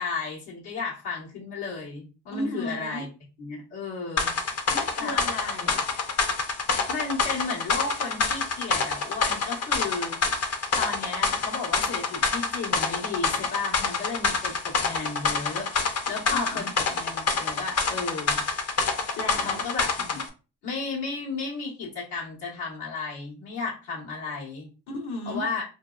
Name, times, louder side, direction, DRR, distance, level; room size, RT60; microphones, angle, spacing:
voice 1, 0.0-3.1 3.4-4.3 5.0-5.1 6.7-10.4 10.7-15.7 16.1-18.4 19.3-20.2 20.6-24.7 25.3-25.6, left 4 dB, 85° left, -5 dB, 1.2 m, -34 dB
voice 2, 2.3-3.0 4.7-5.9 16.3-16.7 19.2-19.6 24.9-25.4, left 1 dB, 65° left, 1 dB, 0.9 m, -34 dB
sound 1, 4.2-20.3, left 4 dB, 40° left, 0.5 m, -27 dB
2.6 x 2.2 x 2.3 m, 0.33 s
supercardioid pair, 55°, 40 cm